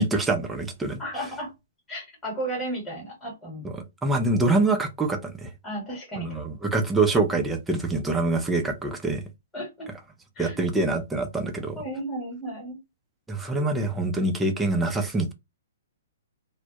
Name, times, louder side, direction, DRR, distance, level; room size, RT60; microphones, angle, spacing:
voice 1, 0.0-1.0 3.6-5.5 6.2-9.2 10.4-11.8 13.3-15.3, right 2 dB, 10° right, 0.5 m, -25 dB
voice 2, 1.0-1.5 1.9-3.6 5.6-6.4 9.5-9.9 10.4-10.6 11.8-12.8 13.6-13.7, right 1 dB, 10° left, 1.1 m, -34 dB
2.2 x 2.1 x 2.7 m
hypercardioid pair, 145°, 0 cm